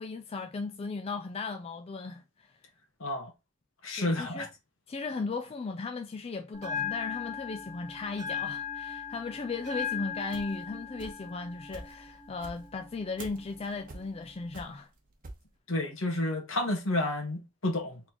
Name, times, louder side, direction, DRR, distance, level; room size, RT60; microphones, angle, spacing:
voice 1, 0.0-2.5 4.0-4.5 4.9-14.9, left 4 dB, 30° left, 0.4 m, -36 dB
voice 2, 3.0-3.3 3.8-4.5 15.7-18.0, left 1 dB, 65° left, 1.3 m, -30 dB
Bell, 6.5-14.5, left 6 dB, 15° right, 1.9 m, -39 dB
sound 1, 9.8-11.4 11.7-15.5, right 2 dB, 40° right, 0.9 m, -47 dB
4.1 x 3.6 x 2.9 m
head